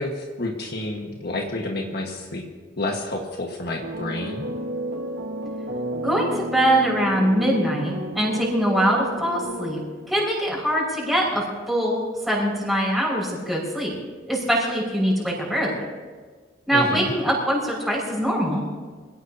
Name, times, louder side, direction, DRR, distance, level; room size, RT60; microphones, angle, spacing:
voice 1, 0.0-2.4 2.8-4.5 16.7-17.1, left 2 dB, 55° left, 1 dB, 1.6 m, -29 dB
sound 1, 3.8-10.2, right 1 dB, 60° right, 1.6 m, -32 dB
voice 2, 5.9-9.8 10.1-14.0 14.3-15.8 16.7-18.6, equal, ahead, -4 dB, 5.8 m, -23 dB
26.0 x 17.5 x 2.9 m, 1.5 s
head